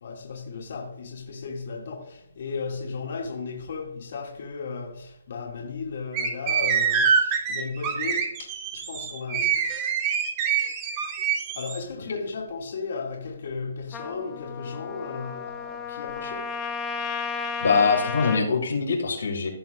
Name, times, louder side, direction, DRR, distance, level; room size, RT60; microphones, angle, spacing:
voice 1, 0.0-9.7 11.5-16.5, left 4 dB, 60° left, 2.4 m, -35 dB
sound 1, 6.1-11.8, right 7 dB, 30° right, 1.5 m, -25 dB
Trumpet, 13.9-18.4, left 5 dB, 20° left, 1.0 m, -33 dB
voice 2, 17.6-19.5, left 4 dB, 80° left, 2.4 m, -23 dB
16.5 x 6.0 x 2.5 m
hypercardioid pair, 145°, 0 cm